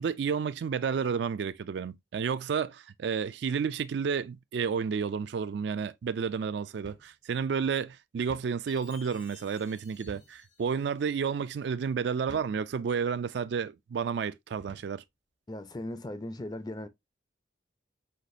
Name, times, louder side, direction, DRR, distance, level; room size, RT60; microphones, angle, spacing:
voice 1, 0.0-15.0, right 6 dB, 65° right, 0.3 m, -31 dB
sound 1, 6.8-7.1 7.5-7.6 8.3-8.6 10.1-10.4 11.1-11.3 12.3-12.6 13.4-13.6 14.6-15.0, right 1 dB, 85° right, 1.0 m, -49 dB
Chime, 8.7-11.2, left 5 dB, 85° left, 2.4 m, -56 dB
voice 2, 15.5-16.9, left 1 dB, 20° left, 0.4 m, -38 dB
5.8 x 2.9 x 2.5 m
head